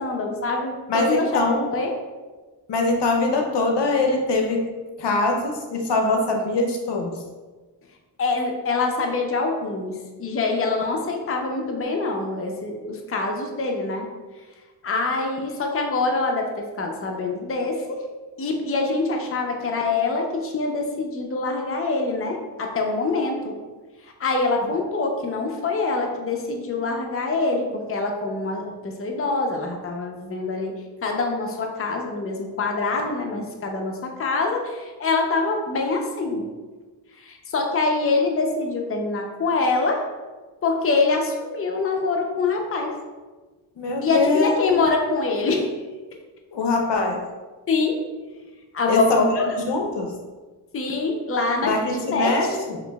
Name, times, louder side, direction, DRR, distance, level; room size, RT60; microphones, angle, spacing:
voice 1, 0.0-1.9 8.2-14.1 14.8-18.0 18.4-23.5 24.0-30.7 31.0-36.4 37.2-40.0 40.6-42.9 44.0-45.7 47.7-47.9 48.7-49.6 50.7-52.6, left 3 dB, 30° left, 2 dB, 0.7 m, -25 dB
voice 2, 0.9-1.7 2.7-4.6 5.0-7.1 43.8-44.8 46.5-47.2 48.9-49.2 49.6-50.1 51.6-52.8, left 3 dB, 65° left, 2 dB, 0.8 m, -23 dB
5.9 x 3.0 x 2.3 m, 1.3 s
cardioid pair, 60°, 45 cm